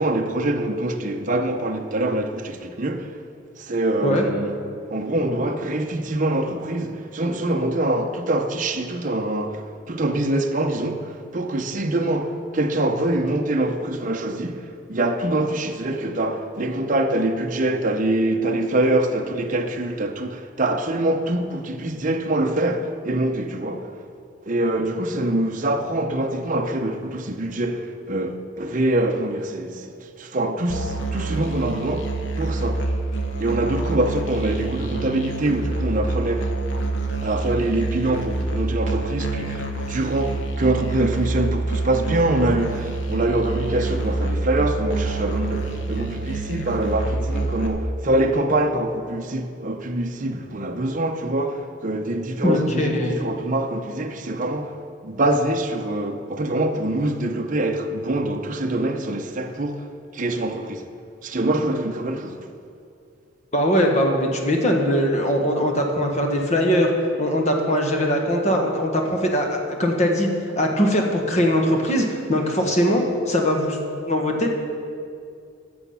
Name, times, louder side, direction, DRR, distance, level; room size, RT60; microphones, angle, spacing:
voice 1, 0.0-3.2 3.6-4.5 4.9-23.9 24.5-32.9 33.4-36.5 37.2-54.8 55.0-59.9 60.1-60.8 61.2-62.4, right 1 dB, 40° right, 0.7 m, -24 dB
Musical instrument, 30.7-47.7, right 3 dB, 60° left, 1.1 m, -27 dB
voice 2, 52.4-53.2 63.5-66.9 67.2-70.3 70.5-73.8 74.1-74.5, equal, 35° left, 1.4 m, -21 dB
14.5 x 7.0 x 5.6 m
head